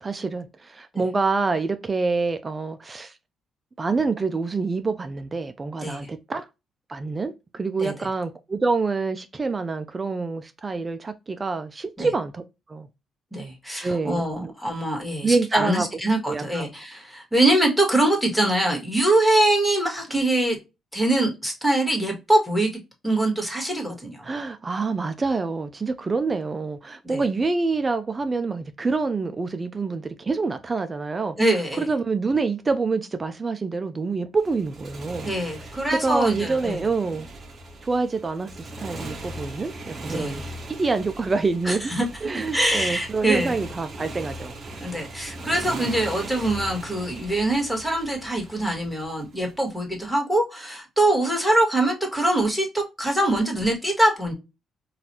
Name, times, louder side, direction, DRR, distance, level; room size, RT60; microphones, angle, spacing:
voice 1, 0.0-3.1 3.8-6.5 6.9-12.4 12.7-12.9 13.8-14.5 15.2-15.9 16.3-16.7 24.2-31.4 31.8-35.3 35.9-37.3 37.8-41.9 42.2-44.6, right 4 dB, 30° right, 0.4 m, -26 dB
voice 2, 13.3-20.6 20.9-22.7 23.0-24.3 27.0-27.2 31.4-31.8 35.2-36.8 40.1-40.4 41.6-42.1 42.3-43.5 44.8-54.3, right 1 dB, 5° left, 1.7 m, -23 dB
Motorcycle, 34.4-49.5, right 2 dB, 45° right, 1.0 m, -39 dB
4.0 x 2.5 x 2.7 m
cardioid pair, 90°, 0 cm